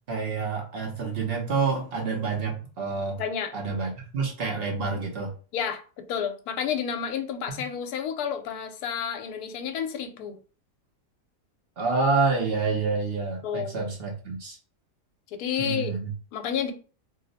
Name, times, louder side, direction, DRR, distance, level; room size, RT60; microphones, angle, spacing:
voice 1, 0.1-3.2 3.5-5.3 11.8-14.6 15.6-16.1, right 4 dB, 55° right, 0.7 m, -28 dB
voice 2, 3.2-3.5 5.5-10.4 13.4-13.9 15.3-15.9 16.3-16.7, left 8 dB, 75° left, 1.0 m, -30 dB
2.8 x 2.0 x 3.9 m
omnidirectional pair, 1.8 m